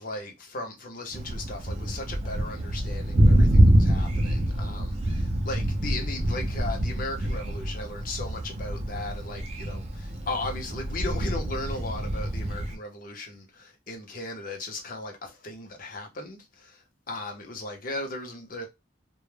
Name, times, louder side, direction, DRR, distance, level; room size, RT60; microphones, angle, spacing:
voice 1, 0.0-18.7, left 2 dB, 50° left, 0.6 m, -37 dB
Thunder, 1.1-12.8, right 1 dB, 35° right, 0.4 m, -25 dB
2.2 x 2.0 x 3.1 m
head